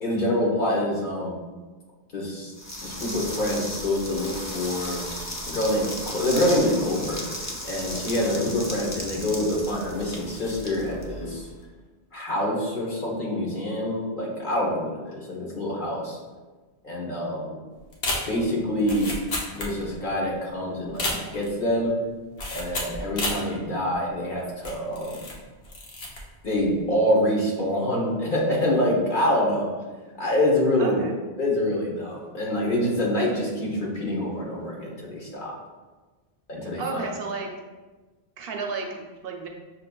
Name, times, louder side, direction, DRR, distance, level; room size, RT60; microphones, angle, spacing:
voice 1, 0.0-1.4 2.1-2.5 2.8-5.0 5.5-7.2 7.6-11.5 12.1-16.2 16.8-17.6 18.3-19.1 19.5-21.9 22.5-25.2 26.4-29.7 30.2-31.0 31.4-35.5 36.5-37.0, left 1 dB, 50° left, -3 dB, 1.0 m, -26 dB
sound 1, 2.5-11.5, left 1 dB, 25° left, 0.4 m, -35 dB
sound 2, 17.9-20.1 20.3-20.4 20.8-21.6 22.4-23.5 23.9-24.0 24.6-25.4 25.6-26.2 26.5-26.8, left 2 dB, 80° left, 1.1 m, -31 dB
voice 2, 30.8-31.2 36.5-37.5 38.4-39.5, right 4 dB, 70° right, 2 dB, 0.7 m, -33 dB
6.1 x 2.7 x 2.2 m, 1.3 s
omnidirectional pair, 1.1 m